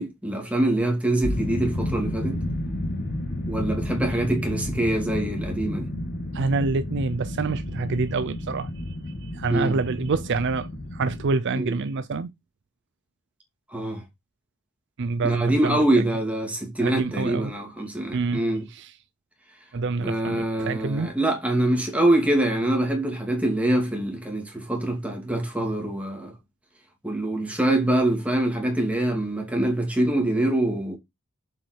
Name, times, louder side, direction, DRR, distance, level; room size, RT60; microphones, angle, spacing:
voice 1, 0.0-2.4 3.5-5.9 9.5-9.7 11.5-11.7 13.7-14.0 15.2-18.6 20.0-26.3 27.0-31.0, right 1 dB, 5° right, 2.5 m, -24 dB
sound 1, 1.2-11.3, left 1 dB, 45° left, 1.7 m, -31 dB
voice 2, 6.3-12.3 15.0-16.0 16.8-17.5 18.1-18.4 18.7-18.9 19.7-21.1, right 3 dB, 55° right, 0.5 m, -27 dB
7.3 x 4.6 x 4.6 m
head